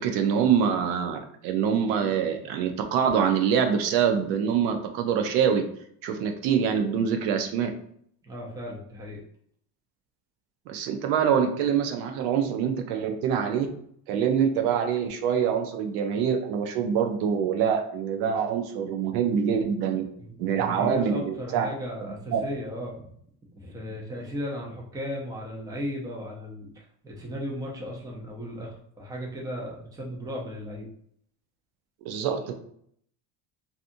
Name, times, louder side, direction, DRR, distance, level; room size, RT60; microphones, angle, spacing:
voice 1, 0.0-5.6 6.0-7.7 10.7-13.7 14.1-20.0 20.4-21.7 22.3-22.4 32.0-32.5, right 7 dB, 70° right, 5 dB, 0.6 m, -25 dB
voice 2, 8.2-9.2 20.2-23.1 23.5-30.9, equal, 10° right, -2 dB, 0.5 m, -36 dB
2.7 x 2.4 x 2.5 m, 0.66 s
supercardioid pair, 115°, 44 cm